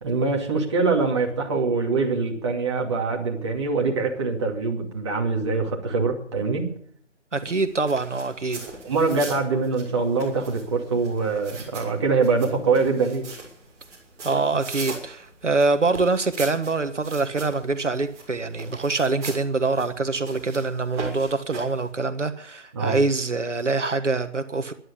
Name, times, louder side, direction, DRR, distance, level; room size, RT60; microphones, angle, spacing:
voice 1, 0.0-6.7 8.8-13.3 22.7-23.0, right 4 dB, 25° right, 0 dB, 2.5 m, -24 dB
voice 2, 7.3-8.6 14.2-24.7, right 3 dB, 75° right, 9 dB, 1.6 m, -24 dB
sound 1, 7.6-21.9, right 3 dB, 10° right, 2.7 m, -40 dB
14.0 x 11.0 x 8.4 m, 0.62 s
figure-of-eight pair, 160°, 36 cm